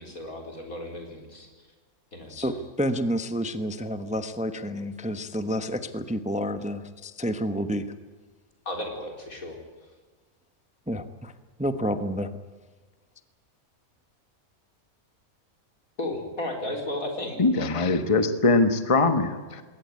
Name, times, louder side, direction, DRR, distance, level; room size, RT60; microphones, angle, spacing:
voice 1, 0.0-1.5 2.1-2.6 8.6-9.6 16.0-17.4, left 1 dB, 70° left, 2 dB, 4.8 m, -34 dB
voice 2, 2.3-7.9 10.9-11.3 11.6-12.3, equal, 5° right, 10 dB, 0.9 m, -29 dB
voice 3, 17.4-19.6, left 3 dB, 25° left, 9 dB, 1.3 m, -22 dB
21.5 x 18.0 x 9.6 m, 1.4 s
omnidirectional pair, 1.5 m